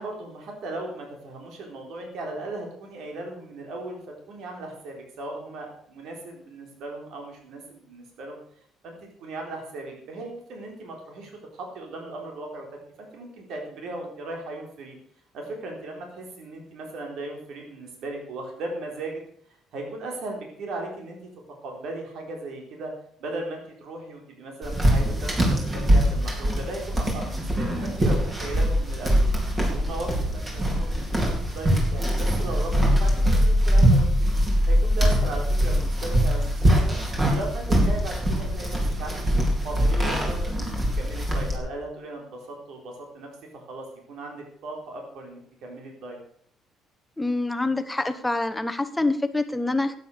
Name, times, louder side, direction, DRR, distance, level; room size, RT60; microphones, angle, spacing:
voice 1, 0.0-4.0 4.3-8.4 8.8-8.9 9.2-12.7 13.0-15.0 15.3-19.2 19.7-21.2 21.6-22.9 23.2-29.3 29.7-34.3 34.7-39.2 39.6-46.2, right 2 dB, 70° right, 1 dB, 4.0 m, -37 dB
sound 1, 24.6-41.6, equal, 25° right, 4.1 m, -22 dB
voice 2, 47.2-50.0, left 2 dB, 10° left, 8 dB, 1.1 m, -26 dB
12.5 x 9.5 x 6.7 m, 0.63 s
cardioid pair, 125°, 0 cm